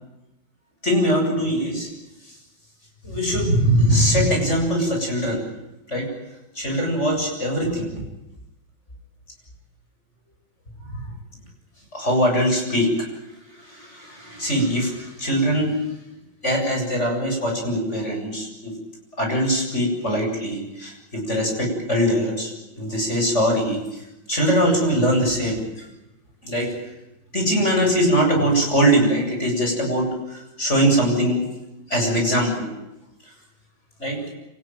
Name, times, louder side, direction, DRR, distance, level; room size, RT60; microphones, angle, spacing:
voice 1, 0.8-1.9 3.0-5.5 5.9-6.1 6.6-8.0 10.9-11.0 11.9-13.1 13.6-15.8 16.4-18.7 19.2-24.0 24.3-25.7 26.4-26.7 27.3-31.4 31.9-32.7 34.0-34.2, equal, 35° left, 1 dB, 8.0 m, -22 dB
27.0 x 19.5 x 9.3 m, 0.94 s
omnidirectional pair, 2.2 m